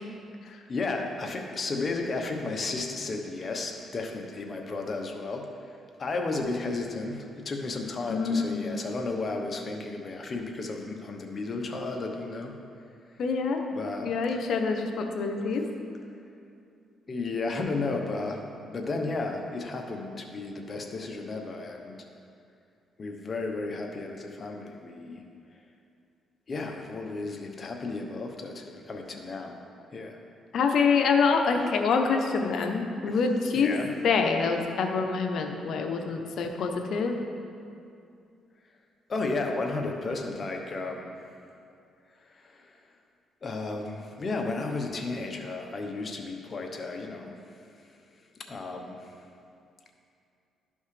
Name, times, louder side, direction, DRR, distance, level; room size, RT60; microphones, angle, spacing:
voice 1, 0.7-12.6 13.7-14.4 17.1-22.0 23.0-25.2 26.5-29.5 29.9-30.2 33.1-33.2 33.5-33.9 39.1-41.2 42.2-42.8 43.4-47.4 47.9-48.0 48.4-49.2, left 3 dB, 40° left, 2 dB, 1.0 m, -33 dB
voice 2, 8.1-8.8 13.2-13.6 14.0-15.7 30.5-33.7 34.0-37.2, left 5 dB, 65° left, 4 dB, 0.8 m, -26 dB
11.5 x 5.4 x 3.3 m, 2.5 s
cardioid pair, 90°, 0 cm